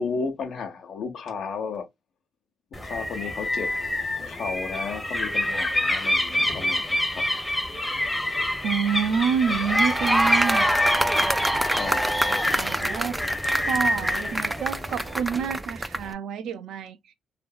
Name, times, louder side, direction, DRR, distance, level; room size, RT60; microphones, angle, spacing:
voice 1, 0.0-1.9 2.8-3.7 4.2-7.2 11.7-12.1, left 5 dB, 65° left, 0.9 m, -33 dB
sound 1, 2.7-15.2, left 1 dB, 15° left, 0.8 m, -27 dB
voice 2, 8.6-10.7 12.5-13.2 13.7-17.1, right 7 dB, 80° right, 0.4 m, -28 dB
sound 2, 9.5-16.1, right 1 dB, 10° right, 0.3 m, -26 dB
2.7 x 2.5 x 2.3 m
cardioid pair, 90°, 0 cm